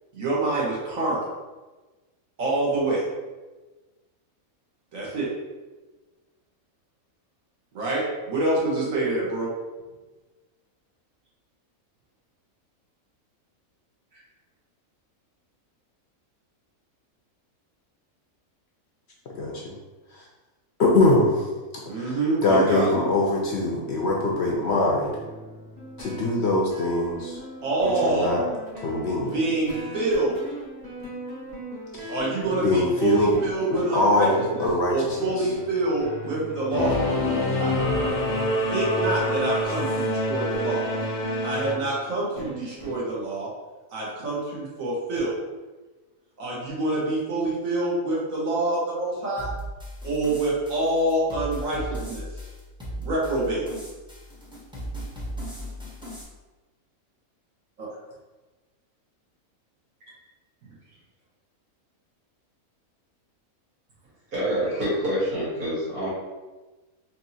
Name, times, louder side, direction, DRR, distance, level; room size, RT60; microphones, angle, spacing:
voice 1, 0.1-1.2 2.4-3.0 4.9-5.3 7.7-8.0 8.3-9.5 21.8-23.1 27.6-28.3 29.3-30.4 32.1-37.7 38.7-40.8 41.4-43.5 43.9-45.3 46.4-49.5 50.0-52.3 53.0-53.6 57.8-57.9, right 2 dB, 65° right, -6 dB, 1.5 m, -26 dB
voice 2, 19.3-19.7 20.1-20.2 20.8-21.5 22.0-25.2 26.0-27.4 27.8-28.4 28.8-29.4 31.9-32.1 32.5-33.4 33.7-35.5, left 2 dB, 65° left, -2 dB, 0.7 m, -23 dB
sound 1, 23.1-43.0, right 2 dB, 30° right, 1.1 m, -40 dB
Singing / Musical instrument, 36.7-41.7, left 1 dB, 85° left, 1.2 m, -25 dB
sound 2, 49.4-56.2, equal, 5° right, 0.4 m, -37 dB
voice 3, 64.3-66.1, equal, 85° right, -9 dB, 2.2 m, -26 dB
4.4 x 2.8 x 2.7 m, 1.2 s
omnidirectional pair, 1.5 m